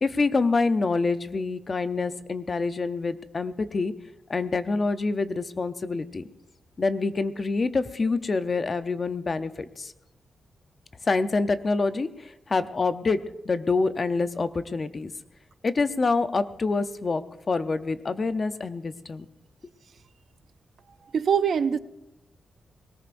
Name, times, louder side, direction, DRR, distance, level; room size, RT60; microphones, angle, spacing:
voice 1, 0.0-3.9 4.3-6.2 6.8-9.9 11.0-15.1 15.6-19.3, left 3 dB, 30° left, 11 dB, 0.6 m, -26 dB
voice 2, 21.1-21.8, right 7 dB, 55° right, 13 dB, 0.5 m, -23 dB
21.0 x 18.5 x 2.6 m, 0.91 s
wide cardioid pair, 160°, 0 cm